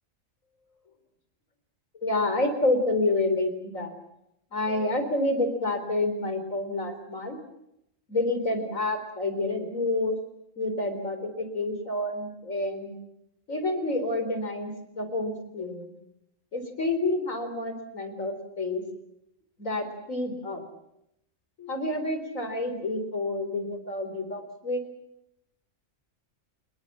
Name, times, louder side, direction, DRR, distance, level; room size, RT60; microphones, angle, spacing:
voice 1, 2.0-4.0 4.5-7.4 8.1-10.2 10.6-12.9 13.5-15.9 16.5-18.8 19.6-20.6 21.6-24.8, left 2 dB, 80° left, 9 dB, 4.4 m, -28 dB
27.0 x 21.5 x 7.3 m, 0.80 s
omnidirectional pair, 1.4 m